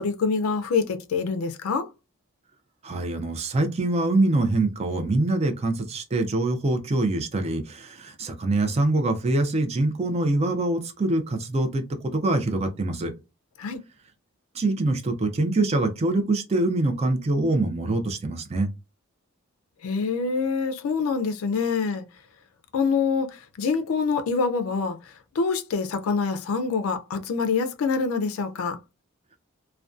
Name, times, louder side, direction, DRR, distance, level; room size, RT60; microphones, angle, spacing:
voice 1, 0.0-1.9 13.6-13.8 19.8-22.0 22.7-28.8, left 5 dB, 75° left, 0.4 m, -26 dB
voice 2, 2.8-13.1 14.5-18.7, right 2 dB, 30° right, 0.4 m, -24 dB
2.5 x 2.2 x 2.3 m
head